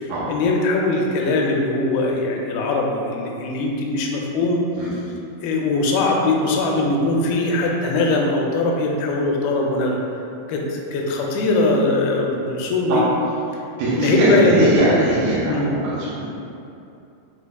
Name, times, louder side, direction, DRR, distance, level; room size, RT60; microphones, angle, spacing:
voice 1, 0.0-4.6 4.9-5.0 5.4-10.0 10.5-13.1 13.9-14.7 15.5-15.7, left 2 dB, 90° left, 0 dB, 2.4 m, -21 dB
voice 2, 13.8-16.3, right 1 dB, 75° right, -9 dB, 2.3 m, -20 dB
7.3 x 2.8 x 2.2 m, 2.7 s
omnidirectional pair, 4.2 m